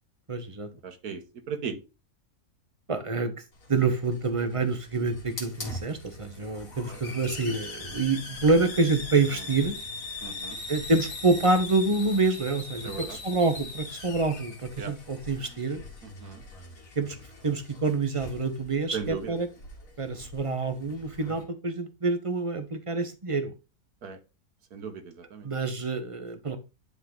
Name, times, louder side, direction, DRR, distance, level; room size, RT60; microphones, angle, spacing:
voice 1, 0.3-0.7 2.9-3.3 3.7-9.7 10.7-15.8 17.0-17.2 17.4-19.5 20.0-23.5 25.4-26.6, right 3 dB, 30° right, 9 dB, 0.7 m, -27 dB
voice 2, 0.8-1.8 6.9-7.0 9.3-9.5 10.2-10.6 12.8-13.2 14.8-14.9 16.0-16.4 18.9-19.4 24.0-24.2 24.7-25.5, right 6 dB, 70° right, 7 dB, 1.6 m, -37 dB
Hiss, 3.5-21.4, left 2 dB, 60° left, 2.2 m, -41 dB
10.0 x 4.0 x 3.8 m, 0.28 s
omnidirectional pair, 1.7 m